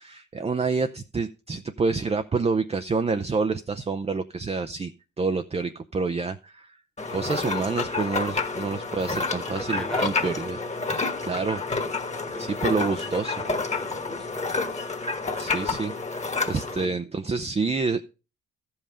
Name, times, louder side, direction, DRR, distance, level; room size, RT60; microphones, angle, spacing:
voice 1, 0.0-4.9 5.2-6.8 7.1-10.6 11.2-11.6 12.4-13.4 15.4-16.2 16.5-18.0, right 4 dB, 20° right, 8 dB, 0.5 m, -28 dB
sound 1, 7.0-16.8, left 3 dB, 25° left, 1.4 m, -29 dB
voice 2, 9.5-10.5 12.3-14.5 16.7-17.0, equal, ahead, 8 dB, 1.1 m, -38 dB
13.5 x 5.5 x 5.0 m, 0.32 s
cardioid pair, 90°, 30 cm